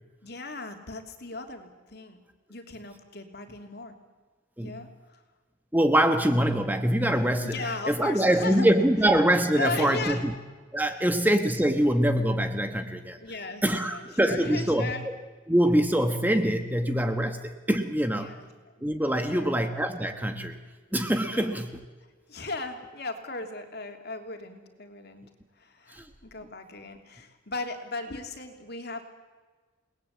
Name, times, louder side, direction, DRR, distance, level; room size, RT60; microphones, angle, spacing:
voice 1, 0.2-2.2 2.5-3.9 4.6-5.2 7.4-8.7 9.5-10.2 11.0-11.1 13.2-15.1 18.2-18.7 19.3-19.5 21.3-21.5 22.3-25.2 25.6-29.0, left 3 dB, 50° left, 5 dB, 3.1 m, -37 dB
voice 2, 5.7-10.3 10.7-13.2 13.6-15.2 15.5-18.3 18.8-20.6 20.9-21.8 25.9-26.1, right 1 dB, 10° right, 7 dB, 1.2 m, -24 dB
29.5 x 20.0 x 8.4 m, 1.4 s
head